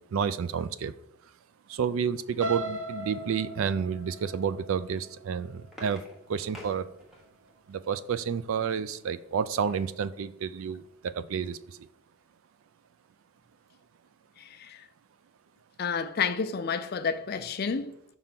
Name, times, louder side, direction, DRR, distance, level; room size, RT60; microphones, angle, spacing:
voice 1, 0.1-0.9 1.7-6.0 6.3-6.9 7.7-11.8, right 7 dB, 65° right, 0.3 m, -30 dB
sound 1, 2.4-6.3 6.8-7.1 7.5-7.6, right 1 dB, 85° right, 1.2 m, -38 dB
sound 2, 5.2-7.6 9.1-10.0 10.5-10.6 10.8-11.1, left 1 dB, ahead, 1.1 m, -50 dB
voice 2, 15.8-17.9, left 6 dB, 45° left, 0.4 m, -29 dB
5.5 x 3.6 x 5.9 m
head